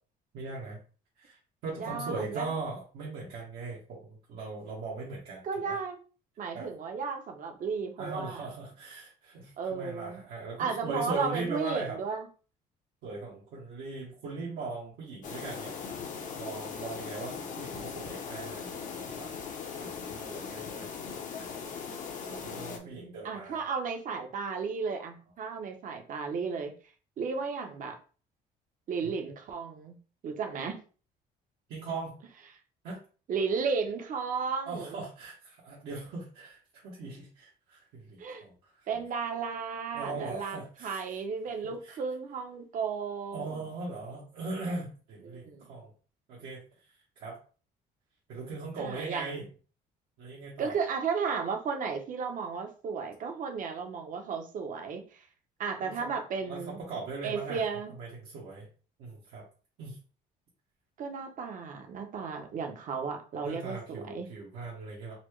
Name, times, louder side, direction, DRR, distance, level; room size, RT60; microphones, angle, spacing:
voice 1, 0.3-0.8 1.2-5.8 6.5-6.7 8.0-12.0 13.0-15.8 16.3-19.3 19.7-20.9 21.3-22.0 22.3-23.7 29.0-29.1 31.7-32.1 32.8-33.0 34.6-38.9 39.9-41.0 41.6-42.0 43.3-45.9 46.3-46.6 47.2-47.4 48.3-49.4 50.2-50.7 55.8-56.1 56.4-57.6 58.0-58.7 59.0-59.4 59.8-60.0 63.4-65.2, right 3 dB, 80° right, -5 dB, 1.2 m, -39 dB
voice 2, 1.8-2.6 5.4-6.0 6.4-8.5 9.6-10.2 10.6-12.3 22.2-26.7 27.2-28.0 28.9-30.0 30.2-30.8 33.3-35.0 38.2-38.4 38.9-43.6 45.2-45.7 48.8-49.5 50.6-55.3 55.6-56.8 57.2-57.9 61.0-64.3, right 5 dB, 50° right, 5 dB, 0.8 m, -34 dB
sound 1, 15.2-22.8, left 6 dB, 50° left, 0.7 m, -39 dB
4.1 x 2.2 x 3.1 m, 0.38 s
cardioid pair, 110°, 17 cm